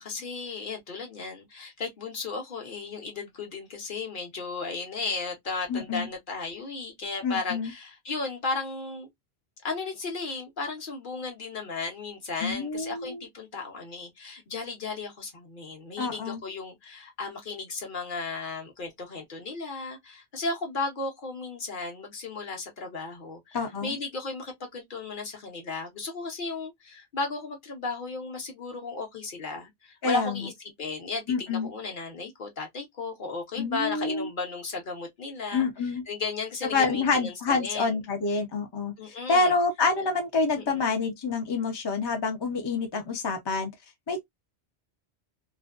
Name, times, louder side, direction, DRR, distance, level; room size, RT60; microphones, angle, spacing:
voice 1, 0.0-9.1 9.6-30.5 30.8-38.0 39.0-39.5 40.6-40.9, left 3 dB, 55° left, 0.9 m, -35 dB
voice 2, 5.7-6.1 7.2-7.7 12.4-13.2 16.0-16.4 23.5-24.0 30.0-30.4 31.3-31.7 33.6-34.3 35.5-36.0 36.7-43.7 44.1-44.2, left 4 dB, 35° left, 0.4 m, -27 dB
2.4 x 2.2 x 2.3 m
omnidirectional pair, 1.1 m